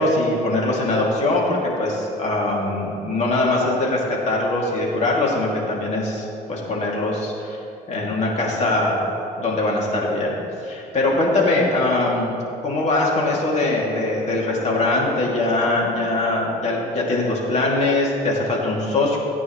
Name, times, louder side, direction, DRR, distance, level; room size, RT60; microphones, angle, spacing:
voice 1, 0.0-7.6 7.9-9.0 9.4-10.4 10.6-12.4 12.6-19.2, left 2 dB, 40° left, -3 dB, 2.6 m, -22 dB
17.5 x 9.1 x 3.2 m, 2.9 s
cardioid pair, 110°, 17 cm